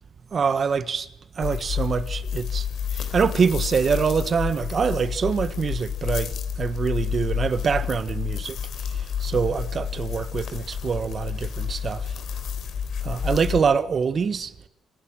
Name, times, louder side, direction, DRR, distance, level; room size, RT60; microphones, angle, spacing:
voice 1, 0.3-1.1 1.4-8.6 8.9-12.1 13.0-14.5, right 6 dB, 45° right, 1.4 m, -25 dB
sound 1, 1.4-13.6, left 8 dB, 70° left, 3.9 m, -30 dB
27.5 x 19.5 x 9.0 m
cardioid pair, 90°, 0 cm